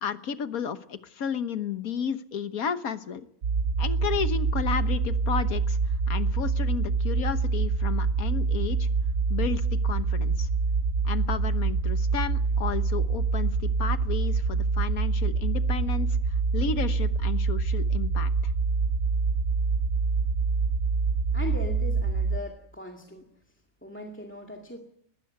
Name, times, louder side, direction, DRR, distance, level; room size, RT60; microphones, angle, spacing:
voice 1, 0.0-3.2 3.8-5.8 6.1-8.9 9.3-10.5 11.0-16.1 16.5-18.5, left 7 dB, 80° left, 11 dB, 1.6 m, -32 dB
sound 1, 3.4-22.4, right 4 dB, 80° right, 1.5 m, -26 dB
voice 2, 21.3-23.3 23.8-24.8, left 1 dB, 10° left, 3 dB, 2.0 m, -39 dB
20.5 x 16.0 x 9.5 m, 0.74 s
omnidirectional pair, 1.5 m